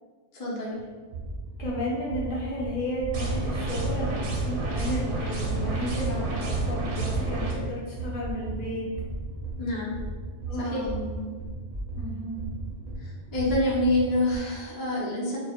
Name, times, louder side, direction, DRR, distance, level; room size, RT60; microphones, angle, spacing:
voice 1, 0.3-0.7 9.6-9.9 10.6-10.9 13.0-15.4, left 1 dB, 35° left, -6 dB, 0.3 m, -27 dB
sound 1, 0.8-14.4, right 2 dB, 60° right, 0.4 m, -36 dB
voice 2, 1.6-8.9 10.5-11.3 12.0-12.4, equal, 60° left, -5 dB, 0.7 m, -33 dB
sound 2, 3.1-7.5, right 2 dB, 85° right, 0.9 m, -29 dB
2.2 x 2.0 x 2.8 m, 1.5 s
omnidirectional pair, 1.2 m